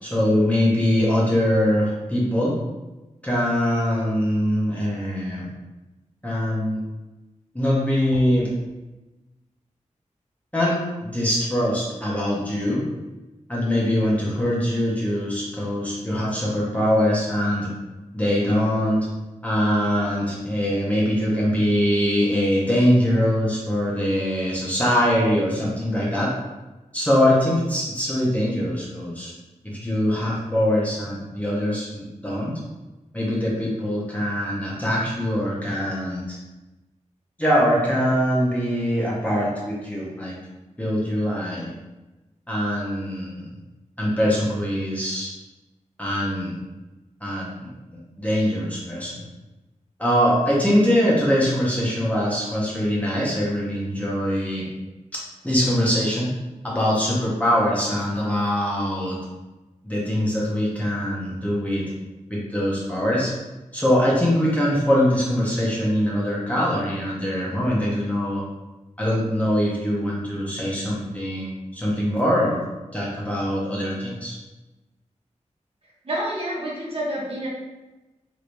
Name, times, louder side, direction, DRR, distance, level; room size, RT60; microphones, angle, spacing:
voice 1, 0.0-2.6 3.2-5.5 6.2-6.8 7.5-8.5 10.5-12.8 13.5-17.7 18.1-19.1 19.4-26.3 26.9-29.3 29.6-32.6 33.1-36.4 37.4-40.3 40.8-41.7 42.5-43.4 44.0-45.3 46.0-46.6 47.2-47.7 48.2-49.1 50.0-54.7 55.4-56.3 56.6-59.2 59.8-61.9 62.3-63.3 63.7-68.4 69.0-72.6 72.9-74.4, equal, 10° left, -6 dB, 0.8 m, -22 dB
voice 2, 76.0-77.5, right 1 dB, 50° right, -5 dB, 1.0 m, -28 dB
3.2 x 3.0 x 2.6 m, 1.1 s
wide cardioid pair, 115°, 13 cm